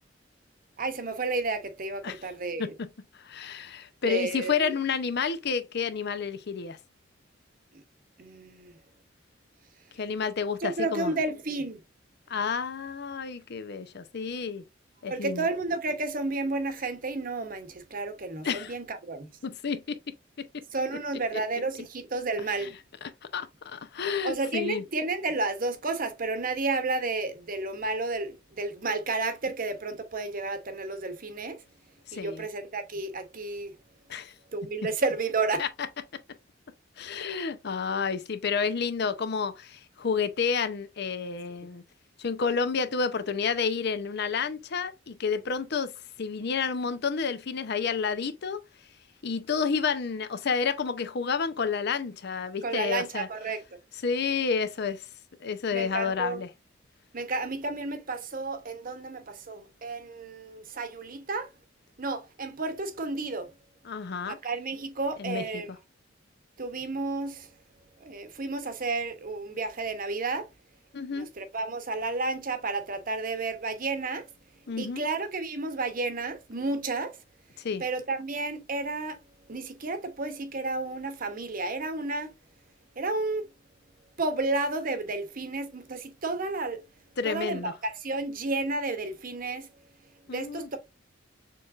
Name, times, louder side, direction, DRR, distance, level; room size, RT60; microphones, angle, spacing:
voice 1, 0.8-2.7 4.0-4.7 8.2-8.7 10.6-11.8 15.1-19.3 20.7-22.7 24.2-31.6 32.1-33.7 34.5-35.6 52.6-53.6 55.7-56.4 57.1-61.5 62.0-63.5 64.3-65.7 66.6-67.5 68.0-70.5 71.1-74.3 74.8-77.2 77.8-79.2 79.5-82.3 83.0-83.4 84.2-86.8 87.2-89.7 90.3-90.8, right 3 dB, 45° right, 0.9 m, -31 dB
voice 2, 3.2-6.8 10.0-11.1 12.3-14.6 15.0-15.5 18.4-18.7 19.4-20.0 22.6-22.7 23.0-24.8 32.1-32.5 34.1-34.3 35.6-35.7 37.0-41.8 42.2-45.9 46.2-48.6 49.2-53.3 54.0-55.0 55.4-56.5 63.8-64.4 65.2-65.6 70.9-71.3 74.7-75.0 77.6-77.8 87.2-87.7 90.3-90.7, left 5 dB, 60° left, 0.6 m, -30 dB
6.7 x 3.1 x 2.4 m
head